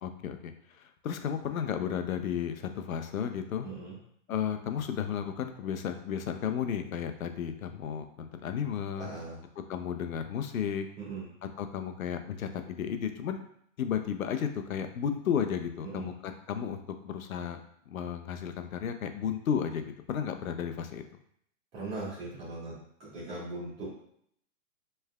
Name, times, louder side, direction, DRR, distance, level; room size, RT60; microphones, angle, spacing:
voice 1, 0.0-3.7 4.3-9.1 9.7-10.9 11.6-13.4 13.8-19.8 20.1-21.0, left 8 dB, 90° left, 8 dB, 0.7 m, -33 dB
voice 2, 3.6-4.0 9.0-9.4 11.0-11.3 15.8-16.1 21.7-23.9, right 3 dB, 15° right, -8 dB, 1.6 m, -39 dB
5.4 x 3.4 x 2.3 m, 0.69 s
hypercardioid pair, 165°, 40 cm